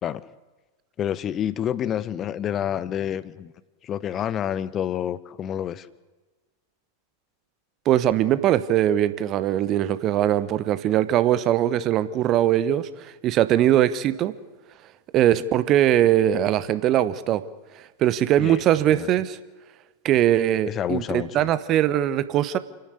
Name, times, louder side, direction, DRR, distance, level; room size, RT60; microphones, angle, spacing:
voice 1, 1.0-3.5 3.8-5.9 18.4-18.6 18.9-19.1 20.7-21.5, left 10 dB, 30° left, 19 dB, 0.9 m, -28 dB
voice 2, 7.8-14.3 15.1-17.4 18.0-19.4 20.0-22.6, right 12 dB, 35° right, 15 dB, 1.1 m, -21 dB
29.0 x 11.5 x 8.3 m, 1.3 s
figure-of-eight pair, 90°, 0 cm